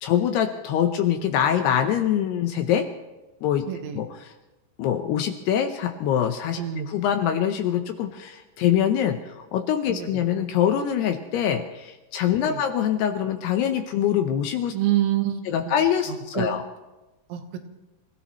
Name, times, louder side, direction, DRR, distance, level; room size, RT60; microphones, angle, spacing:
voice 1, 0.0-2.9 3.4-3.6 3.9-4.3 4.8-14.7 15.5-16.6, left 9 dB, 75° left, 5 dB, 2.6 m, -24 dB
voice 2, 3.7-4.0 6.6-6.9 9.9-10.2 12.3-12.6 14.7-15.6 16.1-16.5 17.3-17.6, right 12 dB, 75° right, 5 dB, 3.5 m, -27 dB
28.5 x 16.5 x 3.1 m, 1.1 s
omnidirectional pair, 5.4 m